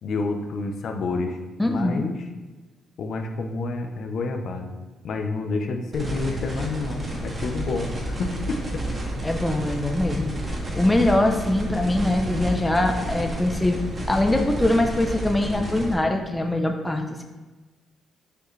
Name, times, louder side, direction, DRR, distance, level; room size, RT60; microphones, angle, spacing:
voice 1, 0.0-2.2 3.0-4.7 5.0-8.8, left 3 dB, 65° left, 4 dB, 0.7 m, -29 dB
voice 2, 1.6-2.0 9.2-10.3 10.8-13.8 14.1-17.0, left 1 dB, 10° left, 4 dB, 0.6 m, -22 dB
sound 1, 5.9-15.9, equal, 35° right, 1.7 m, -31 dB
6.6 x 5.0 x 3.2 m, 1.2 s
cardioid pair, 90°, 0 cm